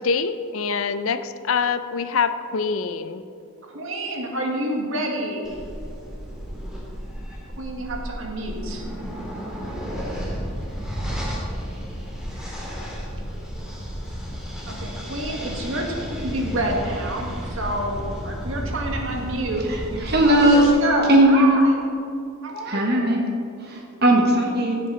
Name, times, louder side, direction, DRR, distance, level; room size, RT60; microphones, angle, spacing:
voice 1, 0.0-3.2, left 5 dB, 70° left, 12 dB, 0.5 m, -25 dB
voice 2, 3.6-5.5 7.6-8.8 14.7-21.8 22.4-23.1, right 1 dB, 65° right, 0 dB, 1.8 m, -28 dB
sound 1, 5.4-20.7, equal, 5° right, 2.4 m, -32 dB
voice 3, 20.1-20.6 21.1-21.6 22.7-23.2 23.7-24.8, right 1 dB, 50° right, 1 dB, 1.3 m, -17 dB
15.5 x 7.7 x 4.0 m, 2.4 s
head